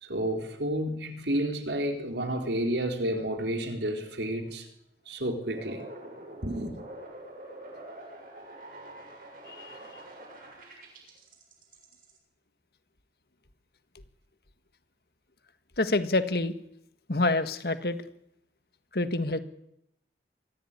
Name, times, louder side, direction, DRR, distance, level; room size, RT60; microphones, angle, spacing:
voice 1, 0.0-4.7 5.1-5.9 6.4-6.7, right 1 dB, 80° right, 4.0 m, -30 dB
sound 1, 5.5-12.2, right 1 dB, 50° right, 7.1 m, -45 dB
voice 2, 9.5-9.8 15.8-16.5 17.1-18.0 18.9-19.4, left 2 dB, 60° left, 1.7 m, -27 dB
23.0 x 15.5 x 9.8 m
head